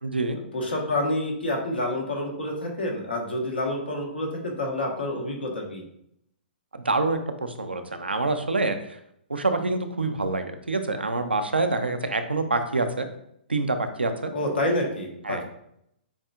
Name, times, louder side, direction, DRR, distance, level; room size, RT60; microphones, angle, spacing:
voice 1, 0.0-0.4 6.8-8.8 9.3-13.1 13.5-14.3 15.2-15.4, right 3 dB, 90° right, 7 dB, 0.5 m, -26 dB
voice 2, 0.5-5.8 14.3-15.4, left 1 dB, 80° left, 0 dB, 1.4 m, -28 dB
7.0 x 2.7 x 2.4 m, 0.74 s
figure-of-eight pair, 120°, 6 cm